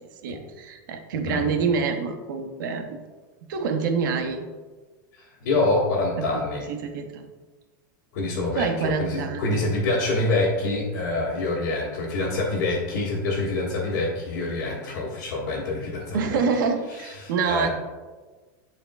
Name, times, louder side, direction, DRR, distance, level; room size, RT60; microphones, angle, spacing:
voice 1, 0.2-3.0 3.5-4.5 6.2-6.4 6.7-7.3 8.5-9.6 16.1-17.7, right 5 dB, 70° right, 5 dB, 0.8 m, -26 dB
voice 2, 5.2-6.7 8.1-16.4 16.9-17.7, left 2 dB, 55° left, -9 dB, 1.8 m, -26 dB
11.0 x 4.4 x 2.3 m, 1.3 s
supercardioid pair, 175°, 11 cm